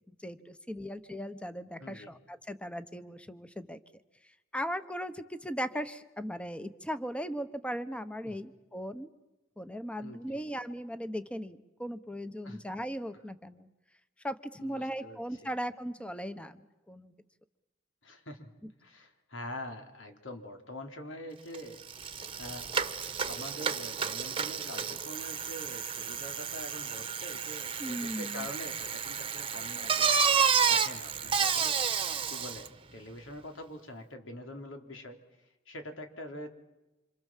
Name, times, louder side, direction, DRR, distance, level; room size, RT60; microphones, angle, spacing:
voice 1, 0.1-3.8 4.5-9.1 9.6-13.7 14.2-17.1 27.8-28.5, equal, 5° left, 12 dB, 1.1 m, -38 dB
voice 2, 1.8-2.1 8.2-8.4 10.0-10.4 12.4-12.6 14.6-15.5 18.0-18.5 18.8-21.8 22.4-22.7 23.3-30.1 30.7-31.8 32.3-35.2 35.7-36.5, left 1 dB, 80° left, 5 dB, 3.6 m, -44 dB
Bicycle, 21.5-21.6 21.9-32.7, right 6 dB, 30° right, 1.2 m, -31 dB
27.0 x 27.0 x 7.5 m, 1.0 s
head